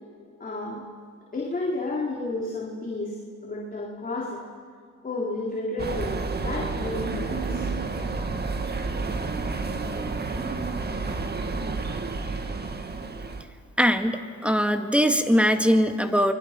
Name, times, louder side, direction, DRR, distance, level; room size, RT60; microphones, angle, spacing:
voice 1, 0.4-0.8 1.3-4.4 5.0-6.1 6.4-7.7, left 2 dB, 30° left, -3 dB, 3.9 m, -31 dB
sound 1, 5.8-13.4, right 3 dB, 35° right, 2.0 m, -30 dB
voice 2, 13.8-16.3, equal, 5° right, 7 dB, 1.8 m, -21 dB
29.0 x 22.0 x 6.0 m, 2.2 s
cardioid pair, 90°, 30 cm